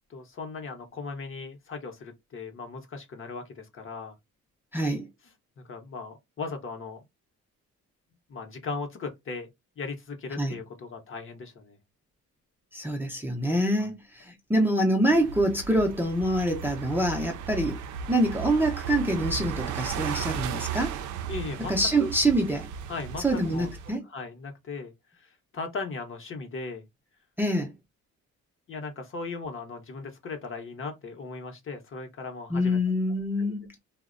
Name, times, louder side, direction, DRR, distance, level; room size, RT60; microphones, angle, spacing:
voice 1, 0.1-4.1 5.6-7.0 8.3-9.5 9.8-11.8 13.8-13.9 21.3-21.7 22.0-22.1 22.9-23.7 24.0-26.8 28.7-32.8 33.4-33.5, left 4 dB, 45° left, 0.8 m, -37 dB
voice 2, 4.7-5.1 10.4-10.6 12.7-17.8 18.1-21.0 21.7-22.7 23.2-24.0 27.4-27.7 32.5-33.7, right 1 dB, 5° right, 0.5 m, -25 dB
sound 1, 15.1-23.9, right 6 dB, 75° right, 0.5 m, -35 dB
2.5 x 2.1 x 2.5 m
cardioid pair, 90°, 30 cm